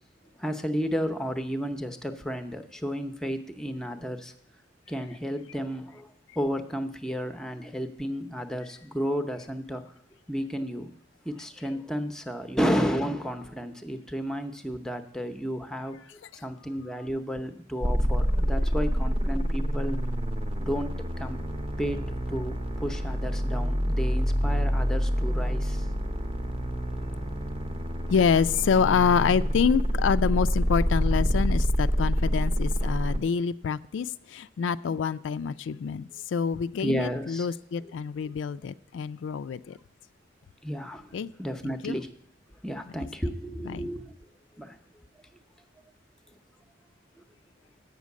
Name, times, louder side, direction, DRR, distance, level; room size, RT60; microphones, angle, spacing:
voice 1, 0.4-4.3 4.9-6.1 6.4-9.8 10.3-10.9 11.2-16.0 16.3-20.0 20.6-25.8 34.9-35.0 36.8-37.5 40.6-42.1 42.6-44.1 44.6-44.8, equal, 5° left, 0.7 m, -32 dB
sound 1, 17.8-33.2, equal, 30° right, 0.8 m, -27 dB
voice 2, 28.1-39.8 41.1-41.3 41.6-42.0 42.9-43.1 43.6-43.9, left 6 dB, 80° left, 0.3 m, -27 dB
8.3 x 6.3 x 8.2 m
head